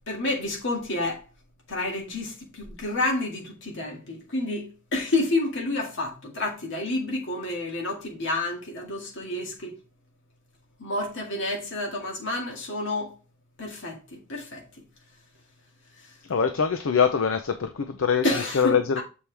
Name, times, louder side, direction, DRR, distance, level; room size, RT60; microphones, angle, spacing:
voice 1, 0.1-1.2 1.7-9.7 10.8-13.2 13.6-14.6 18.2-19.0, left 2 dB, 65° left, 2.1 m, -29 dB
voice 2, 16.3-18.2 18.5-19.0, left 6 dB, 80° left, 0.6 m, -23 dB
7.1 x 4.6 x 3.3 m
head